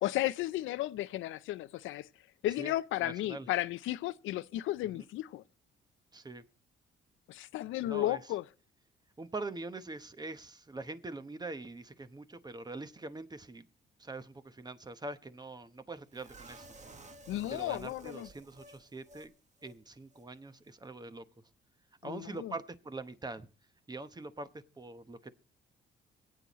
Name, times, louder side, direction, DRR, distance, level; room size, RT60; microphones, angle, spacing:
voice 1, 0.0-2.1 2.4-5.4 7.3-8.4 17.3-18.3 22.0-22.5, left 15 dB, 85° left, 0.5 m, -34 dB
voice 2, 3.0-3.5 4.9-5.0 6.1-6.4 7.8-8.2 9.2-13.7 14.0-16.7 17.5-19.3 19.6-21.2 22.0-23.5 23.9-25.3, right 2 dB, 20° right, 0.9 m, -43 dB
sound 1, 16.1-19.3 19.6-19.7 20.1-20.2, right 2 dB, 35° right, 1.3 m, -53 dB
24.5 x 8.5 x 3.0 m
cardioid pair, 90°, 20 cm